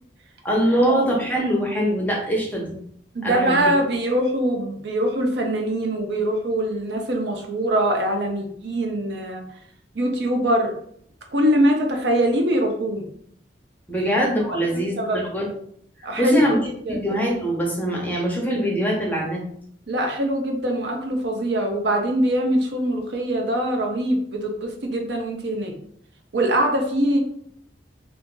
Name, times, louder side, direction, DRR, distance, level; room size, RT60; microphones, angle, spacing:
voice 1, 0.4-2.7 3.2-3.6 13.9-15.4 16.2-16.6 16.9-19.4, right 1 dB, 10° left, -2 dB, 0.6 m, -23 dB
voice 2, 3.1-9.4 9.9-10.7 11.3-13.1 13.9-14.1 14.7-15.2 16.0-16.6 16.9-17.0 19.9-25.7 26.3-27.2, right 1 dB, 70° right, 2 dB, 0.6 m, -23 dB
2.5 x 2.4 x 3.7 m, 0.66 s
head